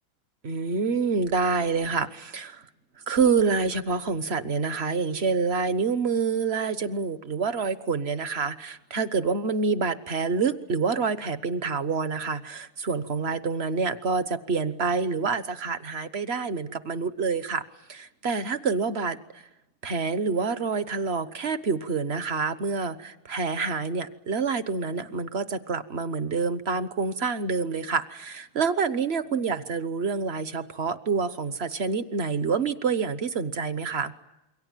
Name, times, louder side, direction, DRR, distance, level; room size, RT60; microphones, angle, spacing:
voice 1, 0.4-2.6 3.1-17.6 17.9-19.4 19.8-34.1, right 5 dB, 40° right, 12 dB, 0.9 m, -27 dB
28.0 x 23.5 x 9.1 m, 0.94 s
omnidirectional pair, 2.4 m